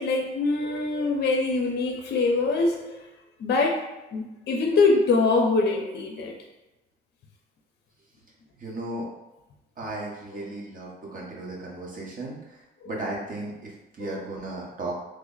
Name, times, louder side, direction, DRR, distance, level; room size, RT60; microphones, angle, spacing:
voice 1, 0.0-3.1 3.4-3.8 4.1-6.3 14.1-14.2, left 3 dB, 55° left, 2 dB, 0.6 m, -24 dB
voice 2, 8.6-9.1 9.8-15.0, right 2 dB, 45° right, -3 dB, 1.1 m, -35 dB
3.2 x 2.1 x 3.8 m, 1.0 s
cardioid pair, 90°, 20 cm